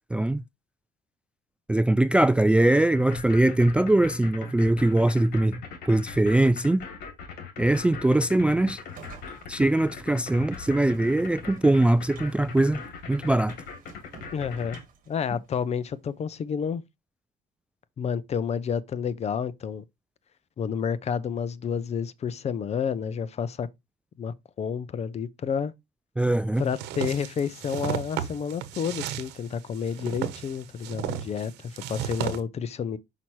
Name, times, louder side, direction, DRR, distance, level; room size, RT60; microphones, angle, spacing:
voice 1, 0.1-0.4 1.7-6.8 7.6-8.8 9.5-12.8 13.1-13.6 26.2-26.6, right 1 dB, 5° right, 0.3 m, -22 dB
sound 1, 2.9-14.8, left 6 dB, 70° left, 2.8 m, -40 dB
sound 2, 8.8-16.0, right 6 dB, 55° right, 1.9 m, -52 dB
voice 2, 14.3-14.8 15.1-16.8 18.0-19.8 20.6-23.7 24.2-25.7 26.6-33.0, left 7 dB, 40° left, 0.6 m, -30 dB
sound 3, 26.7-32.4, right 10 dB, 85° right, 1.0 m, -34 dB
5.8 x 5.8 x 3.1 m
cardioid pair, 110°, 17 cm